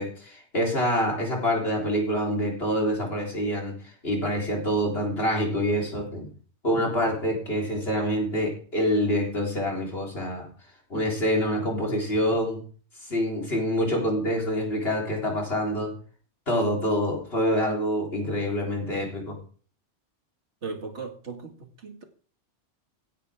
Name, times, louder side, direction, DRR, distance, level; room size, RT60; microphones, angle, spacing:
voice 1, 0.0-3.7 4.0-6.3 6.6-10.5 10.9-12.6 13.0-15.9 16.5-19.4, equal, 55° left, 4.0 m, -26 dB
voice 2, 20.6-22.0, right 4 dB, 70° right, 2.4 m, -37 dB
16.0 x 11.0 x 3.6 m
omnidirectional pair, 1.2 m